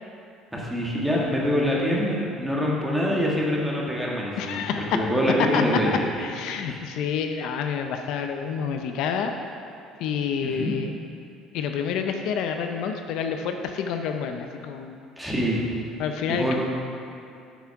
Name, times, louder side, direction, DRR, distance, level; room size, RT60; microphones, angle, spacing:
voice 1, 0.5-4.7 4.9-6.0 6.7-6.8 10.4-10.7 15.2-15.8 16.3-16.5, equal, 5° right, -4 dB, 1.6 m, -25 dB
voice 2, 4.4-4.9 5.5-5.6 6.2-9.3 10.0-10.9 11.5-15.0 16.0-16.5, left 7 dB, 70° left, 5 dB, 0.6 m, -28 dB
8.3 x 6.0 x 5.7 m, 2.5 s
cardioid pair, 135°, 0 cm